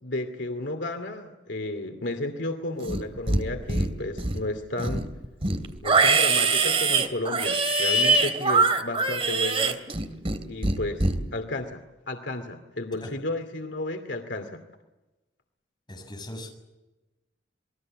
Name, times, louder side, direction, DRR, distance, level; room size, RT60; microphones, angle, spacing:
voice 1, 0.0-5.1 5.8-9.8 10.4-14.6, left 2 dB, 75° left, 6 dB, 2.5 m, -33 dB
Livestock farm animals working animals, 2.8-3.4 3.7-4.4 4.8-10.4 10.6-11.1, right 3 dB, 35° right, 2.5 m, -23 dB
voice 2, 15.9-16.5, left 1 dB, 25° left, 3 dB, 7.0 m, -39 dB
28.5 x 21.5 x 7.7 m, 1.0 s
head